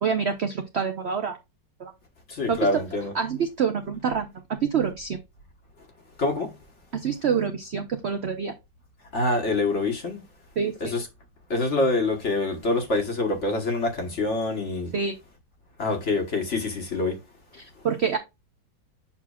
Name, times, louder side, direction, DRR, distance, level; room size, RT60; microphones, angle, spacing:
voice 1, 0.0-1.4 1.8-1.9 2.5-2.6 3.1-4.3 4.6-5.2 6.9-8.5 10.6-10.9 14.9-15.1 17.6-18.2, right 6 dB, 65° right, 0.6 m, -26 dB
voice 2, 2.3-3.1 6.2-6.5 9.1-10.2 10.8-11.1 11.5-14.9 15.8-17.2, left 2 dB, 40° left, 1.4 m, -25 dB
7.1 x 5.8 x 2.4 m
omnidirectional pair, 2.0 m